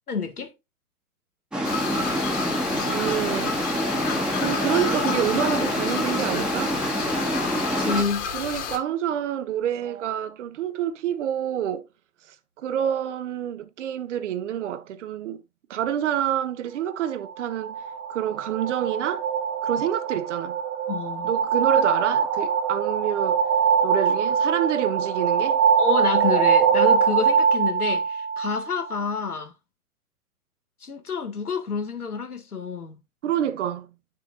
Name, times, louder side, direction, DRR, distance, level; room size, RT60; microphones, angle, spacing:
voice 1, 0.1-0.5 7.8-8.3 20.9-21.3 25.8-29.5 30.8-33.0, left 5 dB, 85° left, 2.0 m, -28 dB
sound 1, 1.5-8.0, equal, ahead, 1.5 m, -26 dB
sound 2, 1.6-8.8, left 7 dB, 35° left, 2.5 m, -31 dB
voice 2, 2.8-3.6 4.4-6.8 8.3-11.9 12.3-15.4 15.7-17.8 18.1-19.3 19.6-20.6 21.2-23.4 23.8-25.6 33.2-33.9, right 10 dB, 55° right, 1.1 m, -27 dB
sound 3, 17.3-28.9, right 7 dB, 25° right, 0.6 m, -23 dB
9.1 x 6.6 x 2.5 m
figure-of-eight pair, 120°, 44 cm